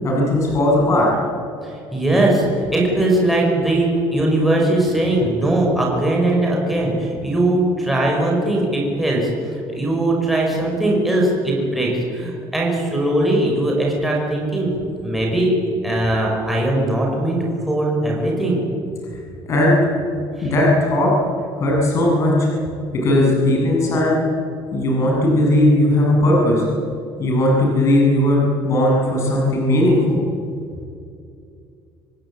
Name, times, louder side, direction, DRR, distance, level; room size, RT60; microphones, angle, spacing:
voice 1, 0.0-1.1 19.1-19.2 19.5-19.8 20.4-21.1 21.6-22.5 23.0-24.2 24.7-26.6 27.2-30.2, left 1 dB, 35° left, -2 dB, 7.8 m, -17 dB
voice 2, 1.6-14.7 15.0-15.6 15.8-18.6 20.4-20.5, right 1 dB, ahead, -3 dB, 5.1 m, -20 dB
26.5 x 19.0 x 8.7 m, 2.4 s
cardioid pair, 175°, 9 cm